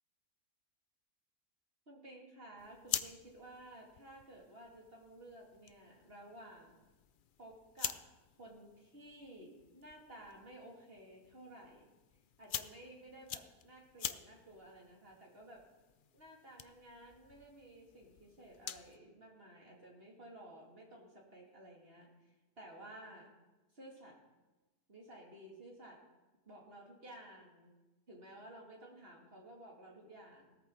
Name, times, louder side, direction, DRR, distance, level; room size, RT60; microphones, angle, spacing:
voice 1, 1.9-6.8 7.4-8.0 8.4-11.9 12.4-15.6 16.1-23.3 23.7-24.2 24.9-26.0 26.4-27.7 28.1-30.5, right 1 dB, 40° right, -1 dB, 2.9 m, -54 dB
sound 1, 2.6-19.0, left 8 dB, 80° left, 0.4 m, -47 dB
17.5 x 13.5 x 4.0 m, 1.1 s
omnidirectional pair, 1.6 m